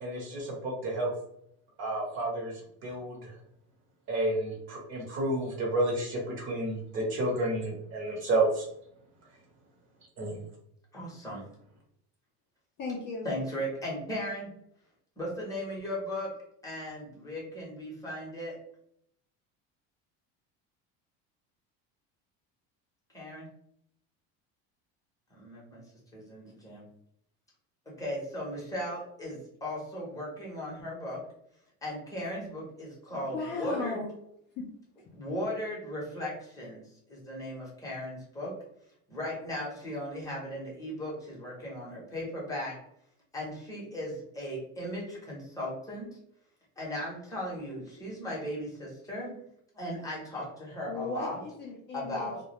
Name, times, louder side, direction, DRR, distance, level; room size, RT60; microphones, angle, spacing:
voice 1, 0.0-1.1 1.8-2.5 2.8-3.3 4.1-8.7 10.2-10.4, right 2 dB, 40° right, -1 dB, 0.7 m, -30 dB
voice 2, 10.9-11.4 13.2-14.5 15.2-16.3 16.6-18.5 23.1-23.5 25.3-25.8 26.1-26.8 28.0-31.2 31.8-34.0 35.1-38.5 39.1-42.8 43.3-46.1 46.8-49.3 49.7-51.4 51.9-52.4, equal, 10° left, -5 dB, 0.7 m, -37 dB
voice 3, 12.8-13.3 33.1-34.1 34.6-34.7 50.9-52.3, left 3 dB, 35° left, -1 dB, 0.4 m, -36 dB
2.2 x 2.1 x 2.8 m, 0.72 s
cardioid pair, 160°, 32 cm